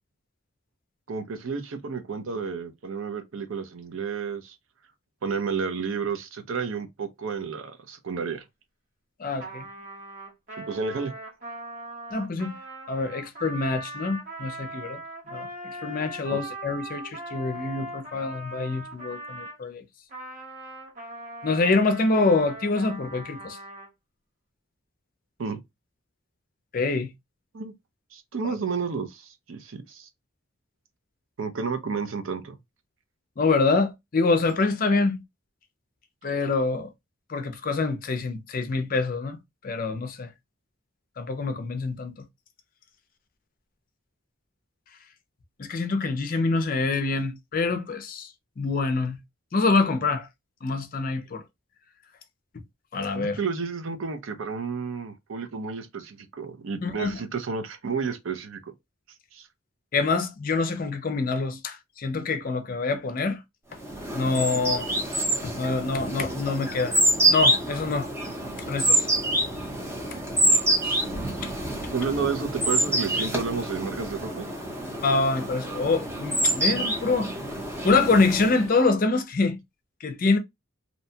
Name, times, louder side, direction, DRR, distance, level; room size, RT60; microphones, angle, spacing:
voice 1, 1.1-4.5 5.2-8.4 10.6-11.1 16.3-16.4 25.4-25.6 27.5-27.7 28.1-30.1 31.4-32.5 53.1-58.7 59.3-59.5 71.9-74.5, right 5 dB, 70° right, 0.5 m, -31 dB
voice 2, 9.2-9.7 12.1-12.5 12.9-15.0 15.3-19.8 21.4-23.6 26.7-27.1 28.4-28.5 33.4-35.2 36.2-36.9 37.3-39.4 39.6-40.3 41.2-42.1 45.6-48.3 48.6-49.2 49.5-50.3 50.6-51.4 52.9-53.4 56.8-57.2 59.9-63.4 64.1-64.9 65.4-67.0 67.3-68.1 68.7-69.1 70.8-71.5 75.0-77.3 77.8-79.6 80.0-80.4, left 3 dB, 40° left, 0.4 m, -25 dB
Trumpet, 9.4-19.6 20.1-23.9, right 1 dB, 40° right, 0.9 m, -40 dB
sound 1, 63.8-78.8, right 1 dB, 10° right, 0.6 m, -26 dB
2.7 x 2.2 x 2.7 m
head